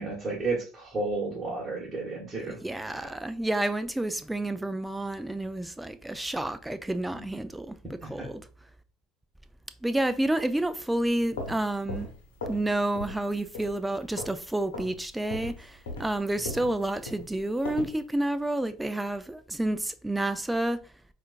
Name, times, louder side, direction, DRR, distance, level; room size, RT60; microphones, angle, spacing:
voice 1, 0.0-2.6 3.0-3.1 7.1-7.3 8.0-8.3, right 3 dB, 25° right, 1.3 m, -32 dB
voice 2, 2.4-7.8 8.1-8.4 9.8-12.1 12.5-20.8, right 1 dB, 10° right, 0.4 m, -29 dB
sound 1, 11.2-12.7 13.0-13.3 13.5-14.4 14.7-15.0 15.3-18.0, left 2 dB, 90° left, 0.8 m, -38 dB
4.3 x 2.4 x 2.4 m
hypercardioid pair, 80°, 0 cm